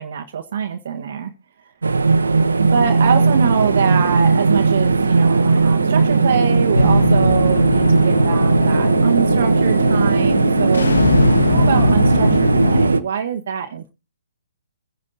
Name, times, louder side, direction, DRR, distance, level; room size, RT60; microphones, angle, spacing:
voice 1, 0.0-1.3 2.6-13.9, right 7 dB, 60° right, 1.4 m, -24 dB
sound 1, 1.8-13.0, right 3 dB, 85° right, 1.1 m, -17 dB
sound 2, 2.7-12.7, right 14 dB, 25° right, 1.1 m, -31 dB
sound 3, 6.7-12.9, left 3 dB, 80° left, 1.2 m, -21 dB
23.0 x 10.0 x 2.7 m
hypercardioid pair, 135°, 0 cm